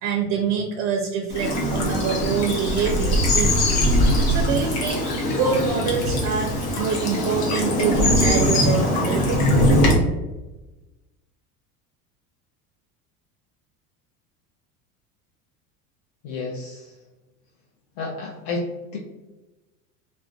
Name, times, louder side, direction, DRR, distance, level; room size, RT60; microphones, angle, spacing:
voice 1, 0.0-3.8 4.3-5.1 5.3-9.5, right 5 dB, 40° right, 2 dB, 0.4 m, -25 dB
Bird vocalization bird call bird song / Stream, 1.3-9.9, equal, 80° left, 0.8 m, -21 dB
voice 2, 16.2-16.9 18.0-18.7 18.9-19.0, left 3 dB, 55° left, -1 dB, 0.5 m, -30 dB
2.5 x 2.1 x 2.4 m, 1.1 s
hypercardioid pair, 85°, 45 cm